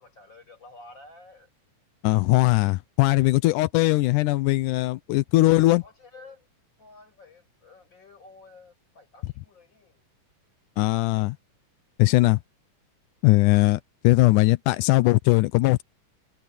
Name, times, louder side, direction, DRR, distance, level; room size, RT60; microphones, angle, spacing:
voice 1, 0.0-1.5 5.8-6.5 6.8-10.0, left 3 dB, 35° left, 7.4 m, -50 dB
voice 2, 2.0-5.8 10.8-11.4 12.0-12.4 13.2-15.8, left 20 dB, 85° left, 2.2 m, -20 dB
omnidirectional pair, 3.5 m